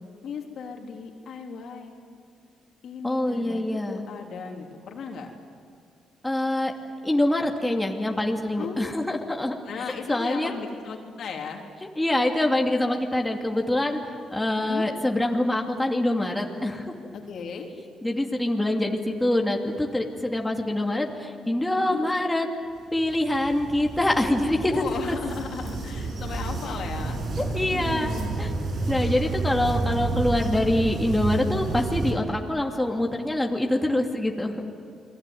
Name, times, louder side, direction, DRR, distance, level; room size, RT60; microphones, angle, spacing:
voice 1, 0.2-1.9 2.8-5.3 8.6-8.9 9.7-11.6 14.5-14.9 17.1-17.7 21.8-22.1 24.7-27.2 27.7-28.4 29.5-30.2, left 5 dB, 65° left, 2 dB, 3.5 m, -36 dB
voice 2, 3.0-4.0 6.2-6.7 7.0-9.5 10.1-10.6 12.0-14.0 14.3-16.9 18.0-22.5 22.9-25.2 27.4-28.1 28.4-28.5 28.9-34.6, left 1 dB, 10° left, 1 dB, 2.8 m, -25 dB
sound 1, 22.9-32.1, right 3 dB, 65° right, 6.8 m, -30 dB
29.5 x 21.0 x 9.5 m, 2.5 s
cardioid pair, 90°, 0 cm